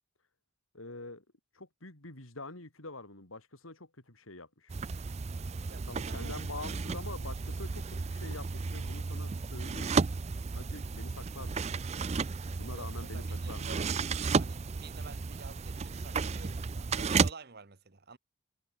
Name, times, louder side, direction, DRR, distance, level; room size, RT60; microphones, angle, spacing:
voice 1, 0.7-1.2 1.5-4.8 5.9-10.0 10.6-11.9 12.5-13.7, left 2 dB, 75° left, 4.2 m, -46 dB
sound 1, 4.7-17.3, right 4 dB, 30° right, 0.4 m, -33 dB
voice 2, 5.6-6.6 12.6-18.2, right 4 dB, 50° right, 1.4 m, -51 dB
head